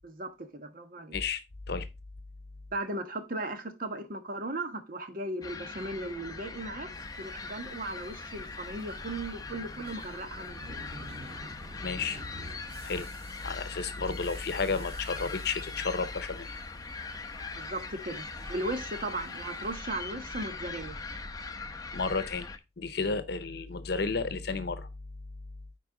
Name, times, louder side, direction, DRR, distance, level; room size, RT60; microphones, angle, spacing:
voice 1, 0.0-1.1 2.7-6.9 7.2-10.8 17.5-21.0, right 2 dB, 55° right, 1.3 m, -37 dB
voice 2, 1.1-1.9 11.8-12.2 12.8-13.1 13.4-16.6 21.9-24.9, left 4 dB, 65° left, 0.8 m, -32 dB
sound 1, 5.4-22.6, left 3 dB, 20° left, 0.8 m, -41 dB
sound 2, 6.9-19.8, equal, 35° right, 1.6 m, -50 dB
9.6 x 4.6 x 3.8 m
head